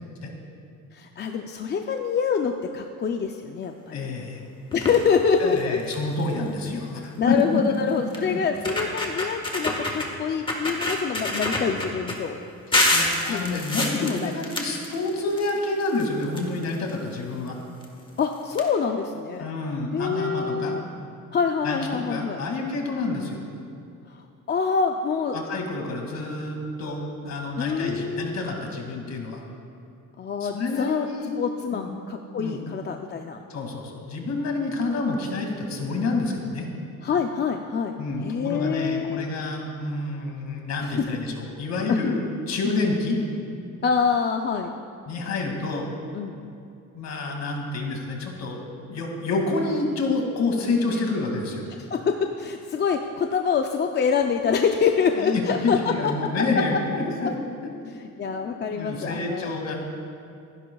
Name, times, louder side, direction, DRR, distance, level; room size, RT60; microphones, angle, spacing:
voice 1, 0.9-4.1 4.7-5.8 7.2-12.4 13.3-13.6 14.0-14.3 18.2-19.5 19.9-20.8 21.3-22.4 24.5-25.4 27.6-28.4 30.2-31.1 31.4-33.4 37.0-39.3 40.8-41.1 41.9-42.1 42.6-42.8 43.8-44.8 46.1-46.4 51.8-56.3 56.6-56.8 57.2-57.3 58.0-59.5, left 6 dB, 35° left, 4 dB, 0.5 m, -26 dB
voice 2, 3.9-4.4 5.4-7.6 8.3-8.4 12.9-17.6 19.4-20.8 21.6-23.4 25.3-29.4 30.4-31.3 31.7-31.9 32.4-32.7 33.5-36.7 38.0-42.2 42.5-43.2 45.1-45.9 46.9-48.6 48.9-51.6 55.2-57.3 57.6-57.7 58.4-59.8, left 3 dB, 55° left, 1 dB, 2.3 m, -28 dB
sound 1, 4.7-5.1 5.6-5.7 5.9-6.2 7.4-7.5 8.1-8.2 8.5-10.1 10.5-12.2 12.7-15.5 15.8-16.9 17.8-17.9 18.2-18.3 18.5-18.6, left 1 dB, 15° left, 1.5 m, -26 dB
27.0 x 10.5 x 2.3 m, 2.5 s
cardioid pair, 140°, 32 cm